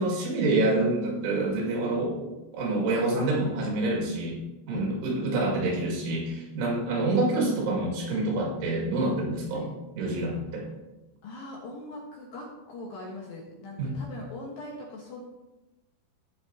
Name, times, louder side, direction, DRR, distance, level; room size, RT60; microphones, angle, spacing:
voice 1, 0.0-9.7 10.0-10.7 13.8-14.0, right 2 dB, 80° right, -2 dB, 4.5 m, -27 dB
voice 2, 11.2-15.2, left 2 dB, 65° left, -2 dB, 2.5 m, -41 dB
18.0 x 6.1 x 2.8 m, 1.0 s
omnidirectional pair, 5.5 m